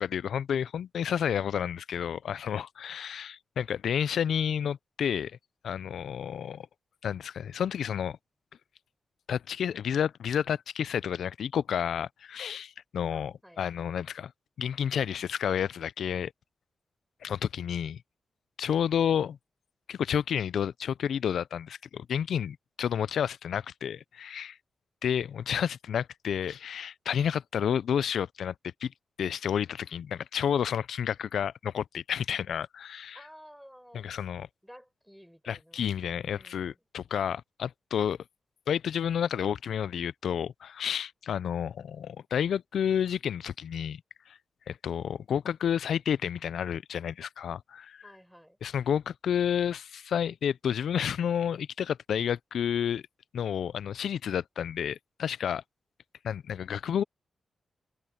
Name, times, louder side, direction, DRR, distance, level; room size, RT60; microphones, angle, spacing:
voice 1, 0.0-5.3 5.6-6.7 7.0-8.2 9.3-14.3 14.6-16.3 17.2-18.0 18.6-19.4 19.9-24.6 25.0-28.5 28.8-28.9 29.2-33.2 33.9-34.5 35.5-38.2 38.7-44.0 44.3-44.4 44.7-48.0 48.6-53.0 53.3-55.6 56.2-57.0, left 8 dB, 90° left, 0.4 m, -30 dB
voice 2, 13.1-13.7 33.1-34.1 34.6-35.8 36.2-36.8 48.0-48.6, equal, ahead, 7.1 m, -53 dB
open air
wide cardioid pair, 125°, 0 cm